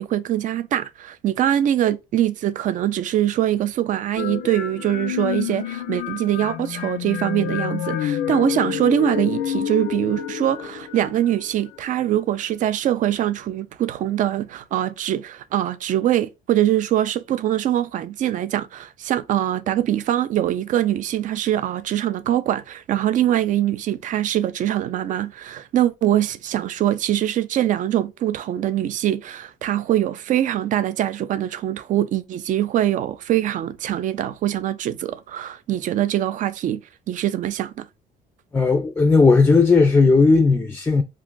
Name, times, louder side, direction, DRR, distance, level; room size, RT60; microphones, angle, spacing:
voice 1, 0.0-36.8 37.1-37.9, right 12 dB, 50° right, 0.4 m, -23 dB
sound 1, 4.2-11.9, left 10 dB, 80° left, 0.4 m, -28 dB
voice 2, 38.5-41.0, left 4 dB, 15° left, 0.4 m, -15 dB
2.5 x 2.4 x 3.7 m
cardioid pair, 110°, 17 cm